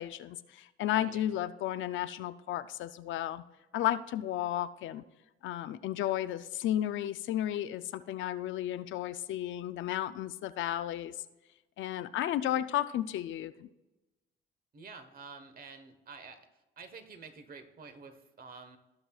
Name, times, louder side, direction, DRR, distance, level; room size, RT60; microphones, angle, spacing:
voice 1, 0.0-3.4 3.7-5.0 5.4-11.2 11.8-13.7, left 12 dB, 75° left, 12 dB, 0.4 m, -33 dB
voice 2, 1.0-1.3 14.7-16.4 16.8-18.8, right 4 dB, 45° right, 8 dB, 1.2 m, -49 dB
17.5 x 5.8 x 2.4 m, 1.0 s
cardioid pair, 90°, 20 cm